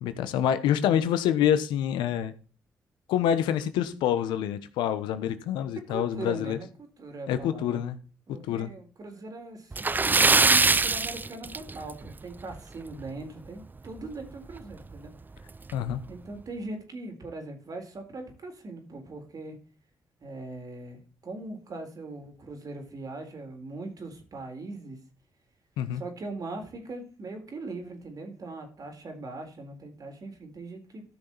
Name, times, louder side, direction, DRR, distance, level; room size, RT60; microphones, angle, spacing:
voice 1, 0.0-2.3 3.1-6.6 7.3-8.0 8.5-8.7 15.7-16.0 25.8-26.0, left 10 dB, 85° left, 1.0 m, -26 dB
voice 2, 5.9-7.8 8.3-9.8 10.6-15.1 16.1-19.6 20.2-25.0 25.9-31.0, right 2 dB, 55° right, 3.9 m, -40 dB
Splash splatter, 9.7-12.1 12.4-12.6 13.0-13.1 14.6-14.7 15.0-15.1 15.7-16.0, right 3 dB, 25° right, 0.4 m, -22 dB
13.5 x 6.1 x 4.1 m
supercardioid pair, 50°, 8 cm